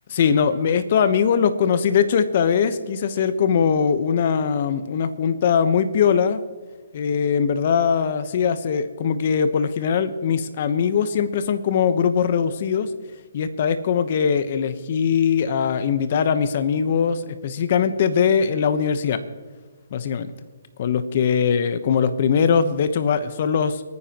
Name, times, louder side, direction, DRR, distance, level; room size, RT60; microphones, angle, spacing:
voice 1, 0.1-6.4 6.9-12.9 13.3-19.2 19.9-20.3 20.8-23.8, left 7 dB, 45° left, 11 dB, 1.0 m, -21 dB
27.0 x 9.6 x 3.0 m, 1.4 s
hypercardioid pair, 155°, 0 cm